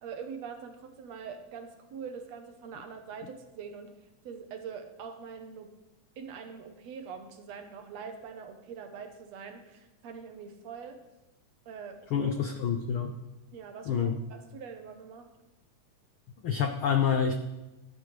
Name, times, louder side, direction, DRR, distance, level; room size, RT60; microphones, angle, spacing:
voice 1, 0.0-3.9 4.2-5.7 6.2-11.0 11.7-12.3 13.5-15.3, right 6 dB, 65° right, 6 dB, 2.2 m, -43 dB
voice 2, 12.1-13.2 13.8-14.2 16.4-17.3, left 7 dB, 75° left, 5 dB, 1.2 m, -27 dB
16.5 x 11.5 x 3.4 m, 0.99 s
omnidirectional pair, 3.4 m